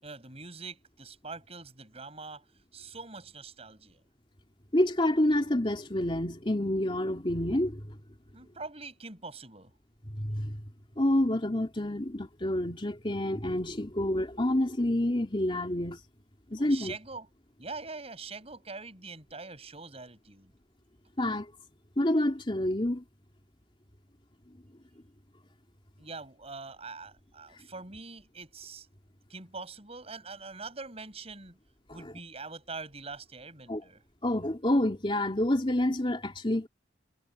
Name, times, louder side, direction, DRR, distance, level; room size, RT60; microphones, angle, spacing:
voice 1, 0.0-2.4 2.7-4.0 8.3-9.7 16.6-17.3 17.6-20.5 26.0-28.9 29.3-31.6 31.9-34.0, right 4 dB, 35° right, 7.6 m, -43 dB
voice 2, 4.7-7.9 10.1-10.6 11.0-16.0 16.5-16.9 21.2-21.5 22.0-23.0 33.7-33.8 34.2-36.7, left 1 dB, 30° left, 3.0 m, -28 dB
head